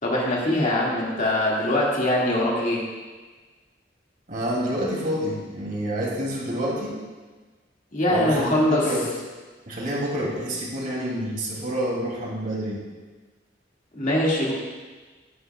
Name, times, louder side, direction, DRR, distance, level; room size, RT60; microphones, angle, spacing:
voice 1, 0.0-2.8 7.9-8.9 13.9-14.5, left 1 dB, 45° left, -4 dB, 2.1 m, -22 dB
voice 2, 4.3-6.9 8.1-9.0 9.7-12.8, equal, 50° right, -3 dB, 2.7 m, -28 dB
14.5 x 9.5 x 2.3 m, 1.3 s
head